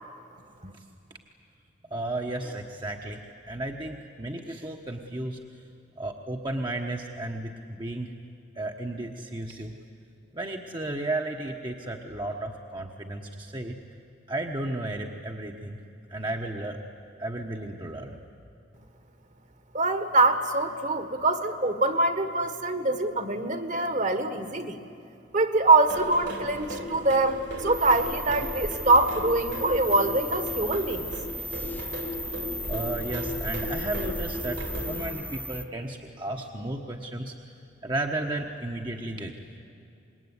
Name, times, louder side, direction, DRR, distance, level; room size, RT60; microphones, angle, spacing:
voice 1, 1.9-5.6 6.0-8.1 8.5-9.7 10.3-13.8 14.3-15.8 16.1-16.8 17.2-18.2 32.2-32.4 32.7-37.5 37.8-39.4, right 2 dB, 25° right, 1 dB, 1.2 m, -34 dB
voice 2, 19.7-24.8 25.3-31.1, right 2 dB, 40° right, 9 dB, 1.7 m, -24 dB
sound 1, 25.9-35.1, left 1 dB, 70° right, 3.3 m, -36 dB
sound 2, 27.7-35.6, equal, 10° left, 1.1 m, -36 dB
26.0 x 21.0 x 9.8 m, 2.6 s
head